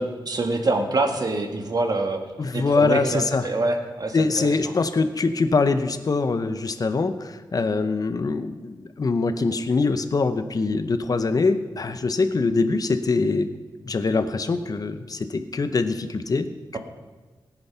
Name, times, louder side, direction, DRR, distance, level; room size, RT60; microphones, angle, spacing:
voice 1, 0.0-2.2 2.5-4.5, right 2 dB, 55° right, 5 dB, 1.6 m, -25 dB
voice 2, 2.4-3.5 4.1-13.5 13.8-16.8, left 3 dB, 50° left, 8 dB, 0.9 m, -23 dB
18.5 x 8.3 x 5.7 m, 1.3 s
wide cardioid pair, 115°, 8 cm